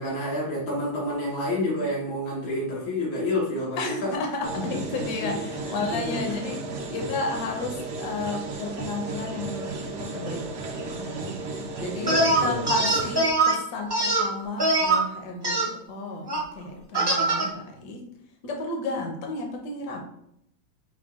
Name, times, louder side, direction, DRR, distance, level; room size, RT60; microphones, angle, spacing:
voice 1, 0.0-4.2 5.2-5.4 5.6-6.2 6.9-7.0 11.5-11.6 12.0-12.9, left 1 dB, 90° left, -6 dB, 1.9 m, -29 dB
voice 2, 3.8-6.7 6.9-11.5 11.8-18.1 18.4-20.1, left 3 dB, 65° left, 1 dB, 1.3 m, -33 dB
sound 1, 4.4-13.2, right 3 dB, 70° right, 0.7 m, -34 dB
sound 2, 12.1-13.5 13.9-15.0 15.4-15.7 16.3-16.4 16.9-17.5, right 2 dB, 25° right, 0.5 m, -22 dB
6.1 x 2.2 x 3.6 m, 0.74 s
omnidirectional pair, 2.1 m